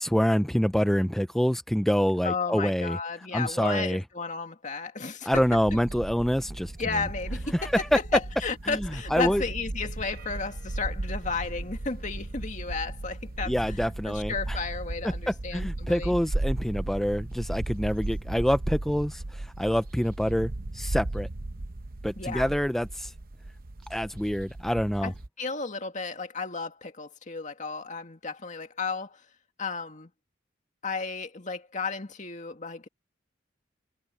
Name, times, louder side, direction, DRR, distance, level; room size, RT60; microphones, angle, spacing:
voice 1, 0.0-3.0 3.3-4.0 5.3-6.7 7.5-8.0 8.7-9.4 13.5-14.6 15.3-21.3 22.0-23.1 23.9-25.1, equal, ahead, 0.4 m, -26 dB
voice 2, 2.2-5.4 6.8-7.7 8.1-16.1 22.2-22.5 25.0-25.1 25.4-29.2 29.6-30.1 30.8-32.9, left 4 dB, 40° left, 2.1 m, -33 dB
sound 1, 5.3-25.3, right 2 dB, 50° right, 0.8 m, -36 dB
head